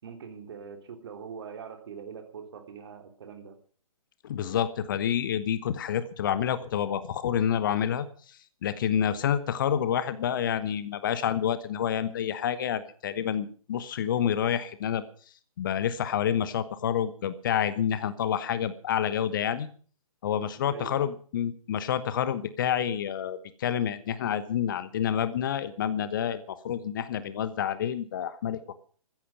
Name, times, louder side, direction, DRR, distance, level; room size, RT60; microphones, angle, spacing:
voice 1, 0.0-3.6 20.7-21.1, right 6 dB, 45° right, 5 dB, 3.1 m, -43 dB
voice 2, 4.2-15.0 15.6-19.7 20.2-28.7, left 9 dB, 35° left, 14 dB, 1.1 m, -28 dB
15.0 x 14.0 x 5.3 m, 0.42 s
figure-of-eight pair, 135°, 19 cm